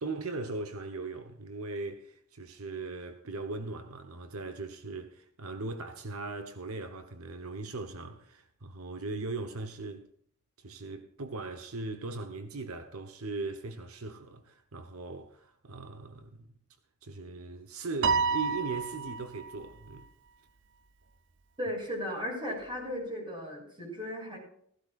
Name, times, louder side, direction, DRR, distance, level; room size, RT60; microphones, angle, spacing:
voice 1, 0.0-10.1 10.6-16.5 17.0-20.1, right 3 dB, 80° right, 1.1 m, -39 dB
Piano, 18.0-19.6, right 5 dB, 60° right, 0.7 m, -29 dB
voice 2, 21.6-24.4, equal, 25° right, 6.5 m, -36 dB
16.5 x 15.5 x 2.5 m
head